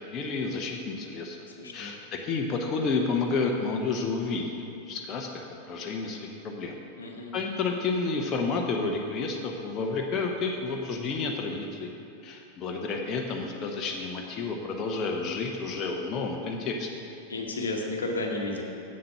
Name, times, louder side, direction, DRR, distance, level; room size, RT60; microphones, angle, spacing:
voice 1, 0.1-1.4 1.7-4.5 4.9-6.7 7.3-11.9 12.2-16.9, left 4 dB, 30° left, 1 dB, 0.8 m, -30 dB
voice 2, 1.6-1.9 7.0-7.3 17.3-18.6, left 2 dB, 70° left, 1 dB, 1.1 m, -32 dB
7.7 x 7.6 x 5.8 m, 2.6 s
figure-of-eight pair, 90°, 0 cm